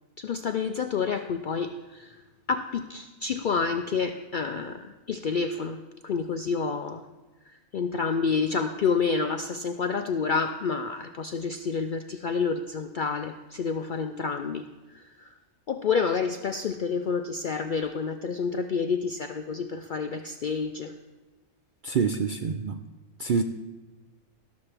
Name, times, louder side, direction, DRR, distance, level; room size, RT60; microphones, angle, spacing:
voice 1, 0.2-7.0 7.5-15.4 15.7-20.9, left 5 dB, 75° left, 8 dB, 0.4 m, -29 dB
voice 2, 21.8-22.8 23.2-23.4, right 5 dB, 65° right, 7 dB, 0.5 m, -26 dB
13.0 x 12.5 x 3.4 m, 1.2 s
omnidirectional pair, 1.4 m